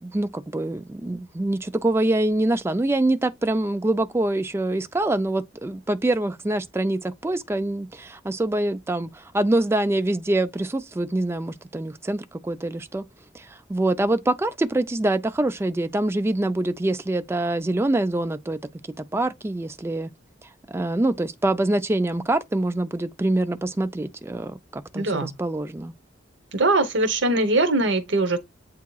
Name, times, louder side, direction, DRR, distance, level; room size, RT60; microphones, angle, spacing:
voice 1, 0.0-13.0 13.3-18.6 19.0-20.1 20.7-25.9, right 1 dB, 15° right, 0.4 m, -25 dB
voice 2, 24.9-25.3 26.5-28.4, right 2 dB, 80° right, 0.9 m, -21 dB
8.2 x 2.8 x 2.3 m
head